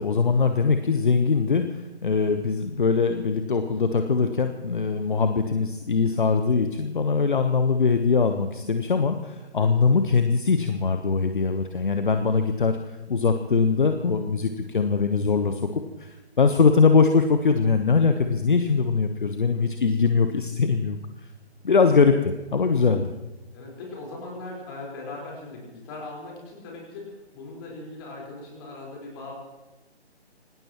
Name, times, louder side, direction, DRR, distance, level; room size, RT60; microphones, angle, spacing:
voice 1, 0.0-21.0 21.6-23.1, left 5 dB, 50° left, 7 dB, 1.1 m, -22 dB
voice 2, 9.3-9.7 19.4-19.7 23.5-29.3, left 2 dB, 20° left, -2 dB, 4.5 m, -40 dB
26.0 x 18.0 x 3.1 m, 1.0 s
figure-of-eight pair, 145°, 33 cm